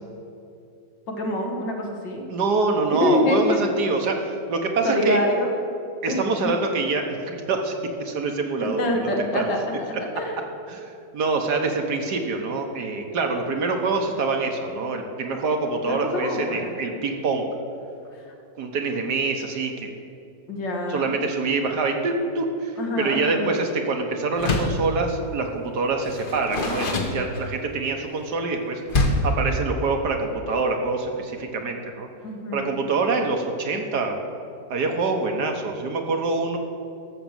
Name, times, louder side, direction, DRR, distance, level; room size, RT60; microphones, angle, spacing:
voice 1, 1.1-2.3 2.9-3.6 4.8-5.5 6.1-6.5 8.6-10.4 15.9-16.7 18.1-18.3 20.5-21.2 22.8-23.5 32.2-32.9, left 1 dB, 80° left, 1 dB, 2.3 m, -26 dB
voice 2, 2.3-5.2 6.0-7.7 8.0-9.5 10.7-10.8 11.1-17.5 18.6-19.9 20.9-28.8 29.2-32.1 32.5-34.2 34.7-36.6, right 3 dB, 65° right, 3 dB, 1.7 m, -25 dB
Door, 24.3-24.9 26.0-27.7 28.9-29.4, left 2 dB, 35° left, 1.1 m, -25 dB
13.5 x 6.6 x 7.3 m, 2.6 s
omnidirectional pair, 1.9 m